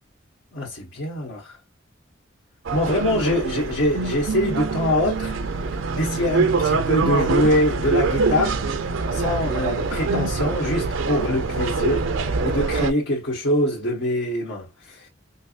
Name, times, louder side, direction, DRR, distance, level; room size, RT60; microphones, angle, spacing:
voice 1, 0.5-1.6 2.7-5.3 5.9-8.6 9.1-12.1 12.4-15.1, left 1 dB, 80° left, 1.4 m, -24 dB
sound 1, 2.6-12.9, right 4 dB, 75° right, 0.6 m, -24 dB
5.5 x 2.1 x 2.5 m
head